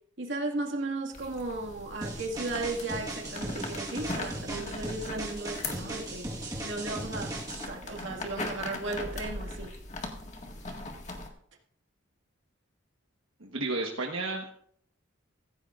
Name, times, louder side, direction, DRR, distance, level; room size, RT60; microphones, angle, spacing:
voice 1, 0.2-7.4 7.7-9.7, right 2 dB, 65° right, 0 dB, 2.0 m, -35 dB
sound 1, 1.1-11.3, left 2 dB, 35° left, 1.8 m, -40 dB
sound 2, 2.0-7.6, right 1 dB, 20° right, 1.6 m, -38 dB
voice 2, 13.4-14.5, right 2 dB, 85° right, 0 dB, 1.3 m, -32 dB
16.0 x 15.5 x 2.5 m, 0.65 s
head